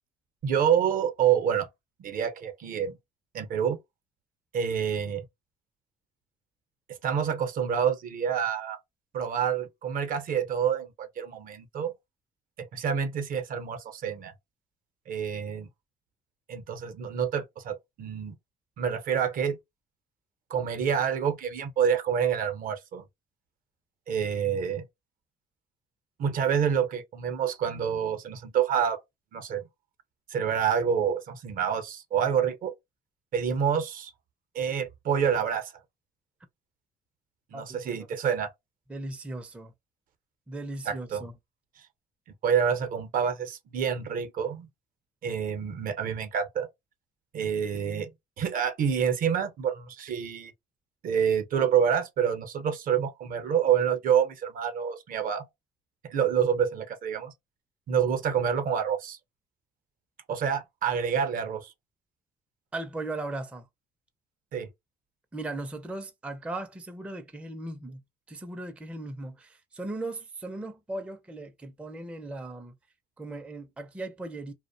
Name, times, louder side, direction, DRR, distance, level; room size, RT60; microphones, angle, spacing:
voice 1, 0.4-1.7 2.0-3.0 3.3-3.8 4.5-5.2 7.0-8.8 9.1-11.9 12.6-14.3 15.1-15.7 16.5-18.3 18.8-19.6 20.5-23.0 24.1-24.8 26.2-29.0 29.3-29.6 30.3-32.7 33.3-34.1 34.5-35.7 37.5-38.5 40.8-41.2 42.4-44.7 45.2-46.7 47.3-48.1 48.4-50.5 51.0-55.5 56.0-57.3 57.9-59.2 60.3-61.7 64.5-64.7, right 8 dB, 55° right, 0.6 m, -27 dB
voice 2, 37.5-38.0 38.9-39.7 40.5-41.3 62.7-63.7 65.3-68.0 68.3-72.7 73.2-74.5, right 2 dB, 5° right, 0.4 m, -37 dB
2.4 x 2.0 x 2.5 m
cardioid pair, 110°, 17 cm